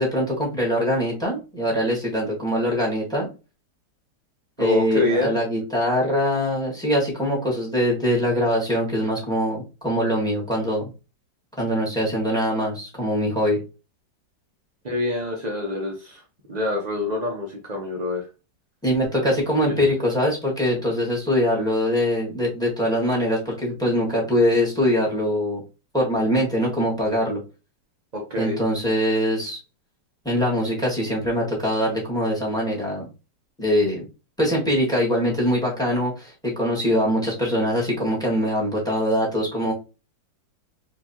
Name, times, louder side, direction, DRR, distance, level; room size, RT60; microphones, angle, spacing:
voice 1, 0.0-3.3 4.6-10.9 11.6-13.6 18.8-25.6 25.9-27.4 28.4-29.6 30.2-33.1 33.6-34.0 34.4-39.7, equal, ahead, -3 dB, 1.7 m, -23 dB
voice 2, 4.6-5.3 14.8-16.2 16.5-18.2 19.7-19.8 28.1-28.6, left 2 dB, 75° right, 0 dB, 0.3 m, -26 dB
4.6 x 3.3 x 2.8 m, 0.31 s
omnidirectional pair, 2.1 m